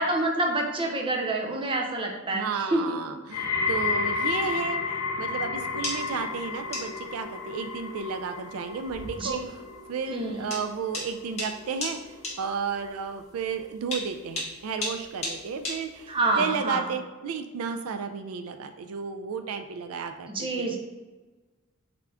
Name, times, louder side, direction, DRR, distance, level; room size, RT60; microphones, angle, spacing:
voice 1, 0.0-3.0 9.2-9.4 10.1-10.5 16.1-16.9 20.3-20.8, right 2 dB, 25° right, 1 dB, 0.6 m, -27 dB
voice 2, 2.3-9.6 9.9-12.0 12.4-20.7, right 5 dB, 75° right, 8 dB, 0.3 m, -33 dB
sound 1, 3.3-14.4 14.7-15.3 16.0-16.1, left 4 dB, 80° left, 0.4 m, -33 dB
sound 2, 5.6-16.3, left 2 dB, 30° left, 1.4 m, -37 dB
3.7 x 3.3 x 3.5 m, 1.3 s
head